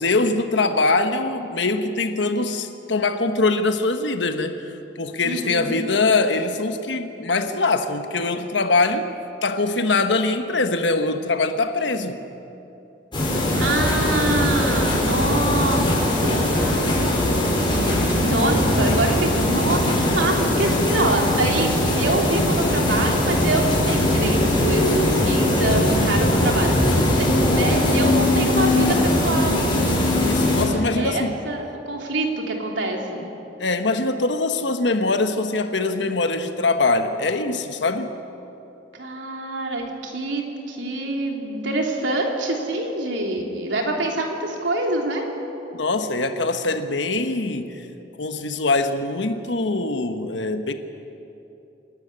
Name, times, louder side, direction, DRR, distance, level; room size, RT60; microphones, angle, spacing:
voice 1, 0.0-9.1 9.4-12.2 30.2-31.4 33.6-38.1 45.7-47.7 48.2-50.7, left 3 dB, 75° left, 8 dB, 1.2 m, -23 dB
voice 2, 5.2-5.8 13.6-15.9 16.2-17.0 17.7-17.8 18.1-21.7 21.9-29.7 30.9-33.3 38.9-45.2, right 2 dB, 80° right, 1 dB, 3.2 m, -25 dB
sound 1, 13.1-30.6, left 1 dB, 25° left, 5.1 m, -20 dB
27.5 x 12.0 x 9.8 m, 2.9 s
head